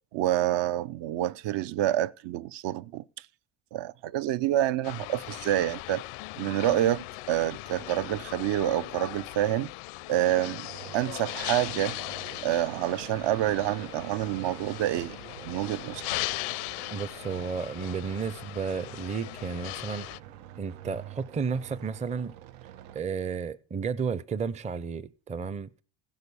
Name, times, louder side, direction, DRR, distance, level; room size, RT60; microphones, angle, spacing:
voice 1, 0.1-3.0 3.7-6.0 6.4-9.7 10.1-10.7 10.9-12.0 12.4-15.2 15.4-16.0, right 13 dB, 60° right, 0.7 m, -27 dB
sound 1, 4.8-20.2, left 22 dB, 80° left, 0.6 m, -39 dB
sound 2, 10.6-23.0, right 12 dB, 90° right, 1.0 m, -47 dB
voice 2, 16.9-20.1 20.6-22.3 22.9-25.8, right 6 dB, 15° right, 0.5 m, -32 dB
16.0 x 6.4 x 6.9 m
cardioid pair, 120°, 48 cm